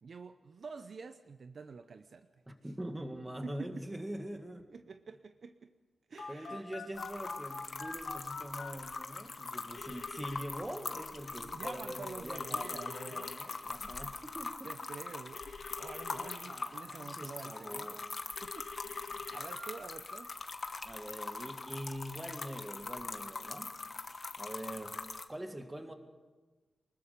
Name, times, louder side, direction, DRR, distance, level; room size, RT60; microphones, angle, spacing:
voice 1, 0.0-2.3 2.6-2.7 3.4-4.0 4.7-5.7 6.1-6.7 11.4-13.3 14.6-18.0 18.4-20.3, right 4 dB, 50° right, 9 dB, 0.7 m, -48 dB
voice 2, 2.5-4.7 6.3-14.7 16.1-18.1 20.8-23.7 24.4-25.0 25.3-25.9, right 1 dB, 15° right, 5 dB, 1.9 m, -44 dB
Telephone, 6.2-8.7 9.7-10.4 12.3-13.4 15.4-16.4 18.4-19.6, left 5 dB, 65° left, 2.7 m, -46 dB
sound 1, 7.0-25.2, left 3 dB, 35° left, 1.2 m, -42 dB
24.5 x 20.5 x 5.2 m, 1.3 s
wide cardioid pair, 145°, 0 cm